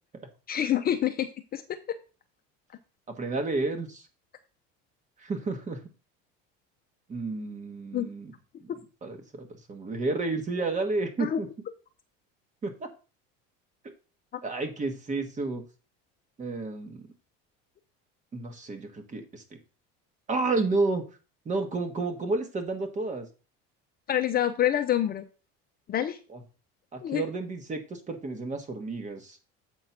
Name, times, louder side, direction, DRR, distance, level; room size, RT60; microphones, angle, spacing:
voice 1, 0.5-2.0 7.9-8.1 8.7-8.8 11.2-11.4 24.1-25.2 25.9-26.2 27.0-27.2, left 11 dB, 30° left, 7 dB, 0.6 m, -27 dB
voice 2, 3.1-4.1 5.2-5.9 7.1-8.3 8.6-8.7 9.0-11.5 12.6-12.9 14.4-15.6 16.4-17.1 18.3-19.6 20.3-21.0 21.4-23.3 26.3-26.4 26.9-29.4, right 3 dB, 25° right, 6 dB, 1.5 m, -31 dB
7.7 x 4.1 x 5.9 m, 0.35 s
cardioid pair, 130°, 29 cm